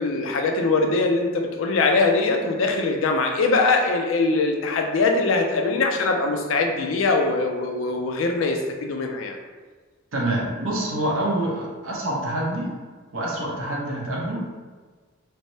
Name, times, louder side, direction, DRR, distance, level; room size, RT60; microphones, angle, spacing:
voice 1, 0.0-9.4, left 3 dB, 70° left, 4 dB, 0.4 m, -22 dB
voice 2, 10.1-12.7 13.1-14.4, right 1 dB, 90° right, -4 dB, 0.8 m, -26 dB
3.3 x 2.0 x 2.7 m, 1.4 s
head